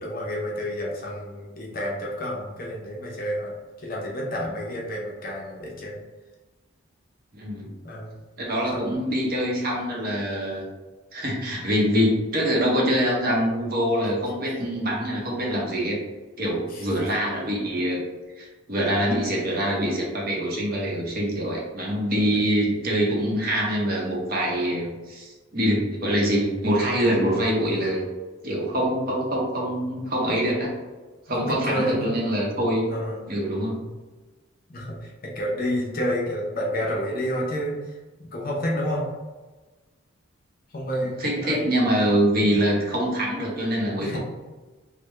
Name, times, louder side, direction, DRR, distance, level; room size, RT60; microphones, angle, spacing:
voice 1, 0.0-3.5 3.8-6.0 7.8-8.1 8.7-8.9 14.5-14.6 16.7-16.8 31.4-32.1 32.9-33.3 34.7-39.0 40.7-41.6 44.0-44.2, equal, 40° left, -3 dB, 0.7 m, -30 dB
voice 2, 7.3-7.7 8.4-10.6 11.1-16.0 16.4-18.0 18.4-28.1 28.4-30.7 31.3-33.0 33.3-33.9 41.2-44.2, equal, 45° right, -3 dB, 0.7 m, -24 dB
3.4 x 2.1 x 3.2 m, 1.2 s
head